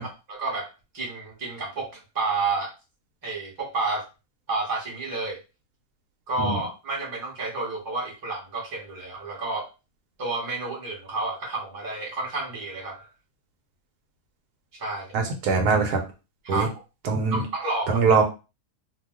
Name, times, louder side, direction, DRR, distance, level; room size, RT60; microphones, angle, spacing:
voice 1, 0.0-2.7 3.2-4.0 4.5-5.4 6.3-9.7 10.2-13.1 14.7-15.1 16.4-16.7 17.3-18.0, right 3 dB, 15° right, -4 dB, 0.8 m, -30 dB
voice 2, 15.1-16.0 16.5-16.7 17.0-17.4 17.9-18.2, right 4 dB, 75° right, 4 dB, 1.1 m, -22 dB
2.7 x 2.2 x 3.5 m, 0.30 s
omnidirectional pair, 1.7 m